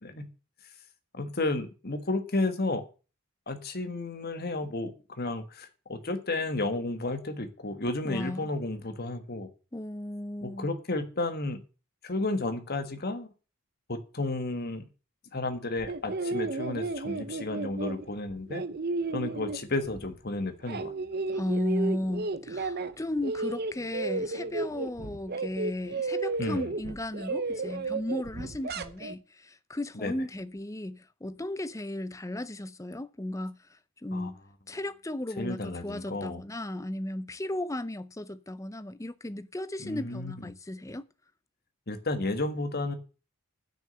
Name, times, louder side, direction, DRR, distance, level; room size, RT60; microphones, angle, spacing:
voice 1, 1.1-2.8 3.5-4.9 5.2-9.5 10.4-11.6 12.0-13.3 13.9-14.9 15.3-18.6 19.1-20.9 26.4-26.6 29.9-30.1 34.1-34.3 35.4-36.4 39.8-40.3 41.9-42.9, left 2 dB, 45° left, 1.5 m, -32 dB
voice 2, 8.0-8.5 9.7-10.7 21.3-34.4 34.7-41.1, left 1 dB, 15° left, 0.6 m, -35 dB
sound 1, 15.8-20.2 20.5-22.9 23.2-29.1, right 3 dB, 45° right, 0.8 m, -33 dB
10.0 x 6.5 x 7.8 m
head